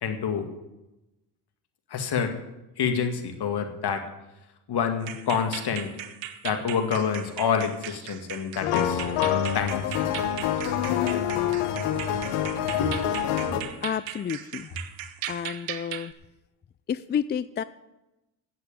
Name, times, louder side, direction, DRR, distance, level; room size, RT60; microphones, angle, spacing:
voice 1, 0.0-0.5 1.9-2.3 2.8-4.0 4.7-5.9 6.4-9.0 9.5-10.1 12.8-13.0 13.4-13.5, left 7 dB, 50° left, 5 dB, 2.1 m, -27 dB
sound 1, 5.0-16.1, right 11 dB, 65° right, 1.0 m, -39 dB
sound 2, 8.6-13.6, left 9 dB, 80° left, 1.3 m, -26 dB
voice 2, 13.8-14.7 15.3-16.1 16.9-17.6, left 8 dB, 25° left, 15 dB, 0.4 m, -30 dB
9.3 x 8.0 x 8.7 m, 0.97 s
hypercardioid pair, 60°, 49 cm